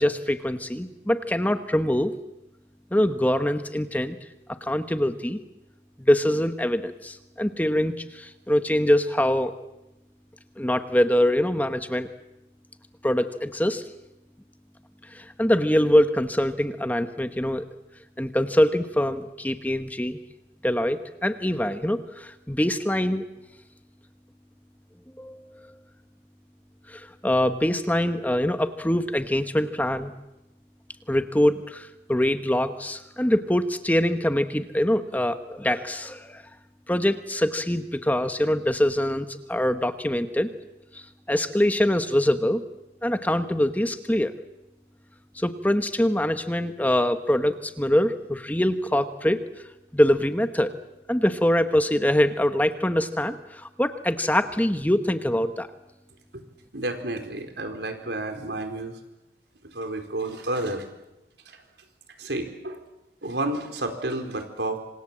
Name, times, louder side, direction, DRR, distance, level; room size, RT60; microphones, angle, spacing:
voice 1, 0.0-2.1 2.9-4.2 4.5-5.4 6.0-9.5 10.6-12.1 13.0-13.8 15.1-17.6 18.2-20.2 20.6-23.2 25.2-25.8 26.9-30.1 31.1-36.4 36.9-40.5 40.9-42.6 43.0-44.3 45.3-49.4 49.9-50.7 51.1-55.7, left 1 dB, 10° left, 9 dB, 1.1 m, -24 dB
voice 2, 56.7-59.0 59.7-60.8 61.5-61.6 62.2-62.8 63.2-64.8, right 2 dB, 80° right, 5 dB, 4.4 m, -30 dB
27.0 x 26.5 x 7.4 m, 0.93 s
head